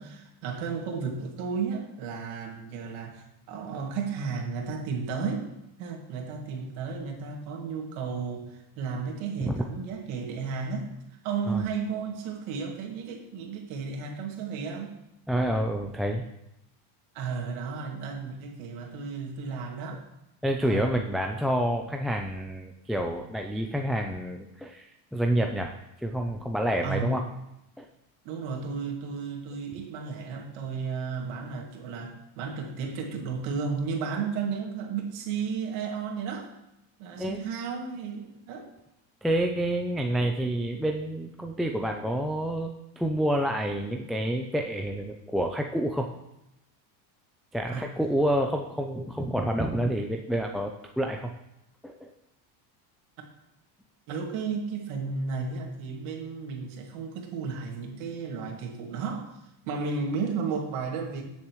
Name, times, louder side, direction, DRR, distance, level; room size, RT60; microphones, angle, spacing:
voice 1, 0.0-5.4 5.8-10.9 11.2-14.9 17.1-20.0 20.6-20.9 26.8-27.3 28.2-36.5 37.0-38.7 47.7-47.9 54.1-59.4 59.6-61.2, right 5 dB, 70° right, 2 dB, 2.3 m, -33 dB
voice 2, 15.3-16.2 20.4-25.7 26.0-27.2 27.8-27.9 37.2-37.5 39.2-46.1 47.5-51.3 51.8-52.1, right 1 dB, ahead, 2 dB, 0.5 m, -28 dB
16.5 x 7.1 x 3.1 m, 0.87 s
supercardioid pair, 115°, 49 cm